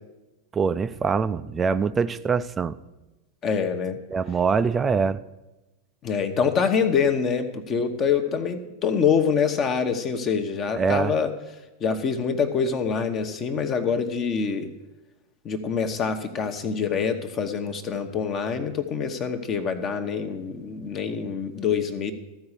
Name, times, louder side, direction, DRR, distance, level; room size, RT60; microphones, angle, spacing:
voice 1, 0.5-2.8 4.1-5.2 10.7-11.1, right 5 dB, 20° right, 13 dB, 0.4 m, -24 dB
voice 2, 3.4-4.0 6.0-11.3 11.8-14.7 15.4-22.1, left 6 dB, 30° left, 7 dB, 1.0 m, -25 dB
14.0 x 4.8 x 8.1 m, 1.0 s
figure-of-eight pair, 90°, 0 cm